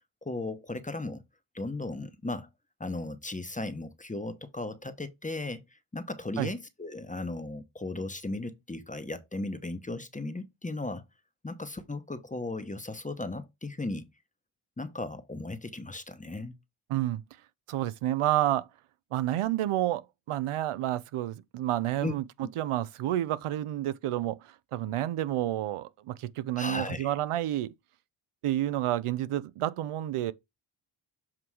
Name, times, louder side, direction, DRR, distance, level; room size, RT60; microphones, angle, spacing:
voice 1, 0.2-1.2 1.5-2.5 2.8-11.0 11.4-14.1 14.8-16.6 22.0-22.2 22.4-22.5 26.6-27.1, left 2 dB, 15° left, 0.9 m, -36 dB
voice 2, 16.9-17.2 17.7-18.7 19.1-27.7 28.4-30.3, right 13 dB, 90° right, 0.7 m, -30 dB
7.4 x 2.9 x 4.8 m
cardioid pair, 60°, 50 cm